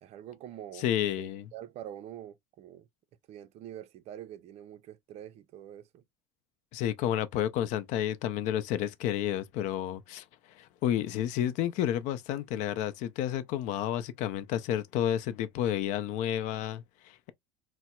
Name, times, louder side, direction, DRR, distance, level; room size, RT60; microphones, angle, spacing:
voice 1, 0.0-2.9 3.3-6.0, right 11 dB, 50° right, 0.5 m, -45 dB
voice 2, 0.8-1.5 6.7-17.3, left 11 dB, 65° left, 0.5 m, -31 dB
4.1 x 2.1 x 2.2 m
supercardioid pair, 110°, 14 cm